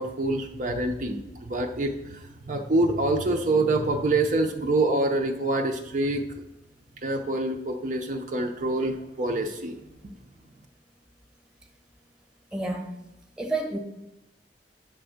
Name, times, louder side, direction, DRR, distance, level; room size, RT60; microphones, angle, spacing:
voice 1, 0.0-6.2 7.0-9.8, right 2 dB, 45° right, 3 dB, 0.6 m, -26 dB
voice 2, 12.5-12.8 13.4-13.8, right 2 dB, 5° right, 3 dB, 1.0 m, -29 dB
8.6 x 3.4 x 6.4 m, 0.94 s
head